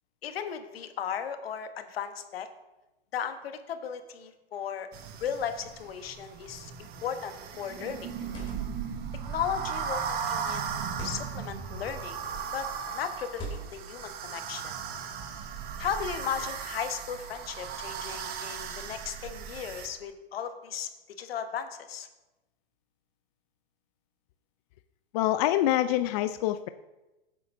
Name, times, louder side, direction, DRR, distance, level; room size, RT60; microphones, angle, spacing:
voice 1, 0.2-2.5 3.1-4.9 5.2-8.1 9.3-12.2 12.5-12.7 12.9-14.7 15.8-20.9 21.2-22.1, left 8 dB, 70° left, 9 dB, 1.1 m, -36 dB
sound 1, 4.9-19.9, right 7 dB, 30° right, 1.2 m, -37 dB
sound 2, 6.9-7.3 8.1-8.8 9.6-10.0 10.8-11.3 12.1-12.5 13.3-13.9, right 1 dB, 15° left, 2.9 m, -42 dB
voice 2, 25.1-26.7, left 13 dB, 40° left, 11 dB, 0.4 m, -25 dB
15.5 x 8.2 x 2.6 m, 1.0 s
hypercardioid pair, 120°, 30 cm